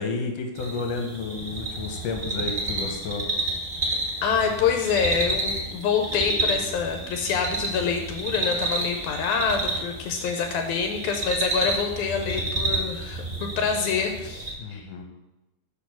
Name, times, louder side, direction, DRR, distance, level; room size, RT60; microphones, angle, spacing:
voice 1, 0.0-3.2 14.6-15.0, left 4 dB, 70° left, 3 dB, 1.9 m, -31 dB
sound 1, 0.6-14.5, right 2 dB, 45° right, 0.7 m, -30 dB
voice 2, 4.2-15.0, left 6 dB, 85° left, 4 dB, 2.0 m, -26 dB
5.3 x 4.5 x 6.1 m, 1.0 s
omnidirectional pair, 3.4 m